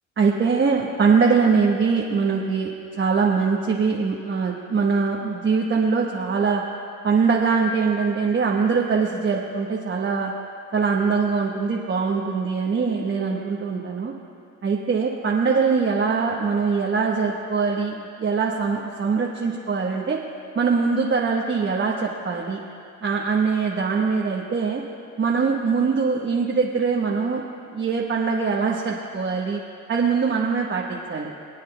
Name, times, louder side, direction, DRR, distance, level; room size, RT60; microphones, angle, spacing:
voice 1, 0.2-2.7 3.0-6.6 7.0-10.3 10.7-14.1 14.6-20.2 20.5-22.6 23.0-24.8 25.2-27.4 27.7-29.6 29.9-31.3, right 5 dB, 40° right, -2 dB, 1.1 m, -22 dB
25.0 x 9.2 x 2.3 m, 2.4 s
cardioid pair, 90°, 30 cm